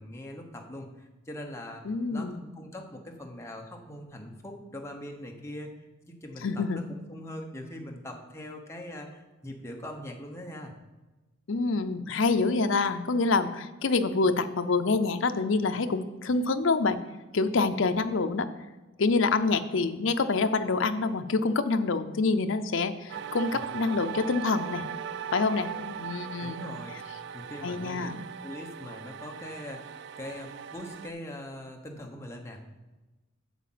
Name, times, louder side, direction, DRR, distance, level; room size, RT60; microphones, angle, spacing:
voice 1, 0.0-1.8 2.1-10.7 26.4-28.1 28.4-32.6, left 1 dB, 15° left, 1 dB, 1.0 m, -42 dB
voice 2, 1.9-2.4 6.4-6.8 11.5-17.0 17.3-18.5 19.0-24.9 25.3-26.7 27.6-28.1, left 3 dB, 65° left, 9 dB, 0.6 m, -26 dB
sound 1, 23.1-31.1, right 8 dB, 55° right, 0.3 m, -39 dB
8.2 x 5.0 x 7.5 m, 1.1 s
head